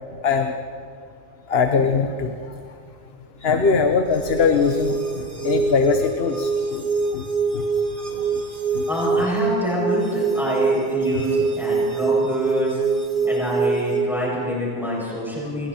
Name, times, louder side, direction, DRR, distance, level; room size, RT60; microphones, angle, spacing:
voice 1, 1.5-2.4 3.4-6.9 7.1-7.3 7.5-7.7 8.0-8.5 8.7-8.9 11.1-11.4, left 5 dB, 55° left, 6 dB, 1.3 m, -22 dB
sound 1, 4.1-14.1, right 4 dB, 40° right, 2.3 m, -24 dB
voice 2, 8.9-12.8 13.2-15.7, equal, ahead, -6 dB, 7.2 m, -26 dB
28.5 x 22.0 x 4.4 m, 2.4 s
omnidirectional pair, 1.3 m